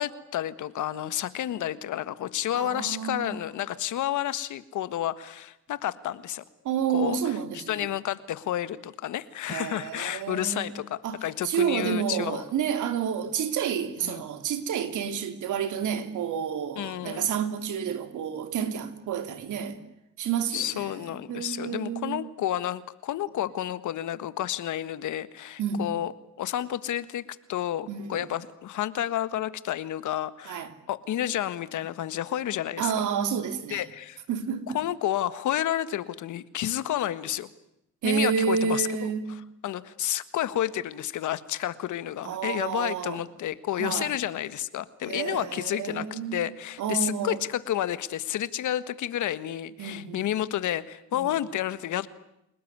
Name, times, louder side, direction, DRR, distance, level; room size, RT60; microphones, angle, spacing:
voice 1, 0.0-6.4 6.9-7.2 7.5-12.4 14.0-14.2 16.7-17.3 20.5-26.1 26.4-27.2 27.5-33.0 33.7-34.2 34.7-37.5 38.0-38.9 39.6-52.1, left 12 dB, 75° left, 1.6 m, -30 dB
voice 2, 2.5-3.4 6.6-7.9 9.5-19.8 20.2-22.3 25.6-25.9 27.9-28.3 30.5-30.7 32.8-33.9 34.3-34.8 38.0-39.4 42.2-43.2 43.8-44.1 45.1-47.4 49.8-50.2 51.1-51.3, right 7 dB, 80° right, 3.0 m, -30 dB
29.5 x 19.0 x 9.6 m
cardioid pair, 90°, 30 cm